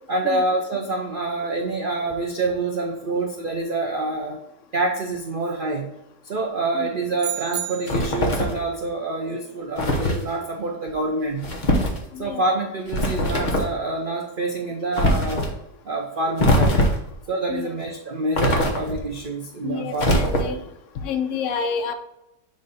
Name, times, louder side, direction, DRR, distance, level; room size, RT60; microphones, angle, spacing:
voice 1, 0.1-4.4 4.7-5.9 6.2-11.5 12.2-15.5 15.8-16.8 17.3-20.2, right 2 dB, 55° right, 1 dB, 0.6 m, -26 dB
sound 1, 7.2-8.3, right 11 dB, 70° right, 1.0 m, -31 dB
sound 2, 7.9-8.6 9.8-10.2 11.4-12.0 12.9-13.7 14.9-15.5 16.4-17.1 18.3-19.1 20.0-20.7, left 1 dB, 35° left, 1.0 m, -21 dB
voice 2, 19.6-20.6 21.0-21.9, left 6 dB, 60° left, 6 dB, 0.9 m, -28 dB
7.2 x 2.6 x 5.3 m, 0.86 s
omnidirectional pair, 1.7 m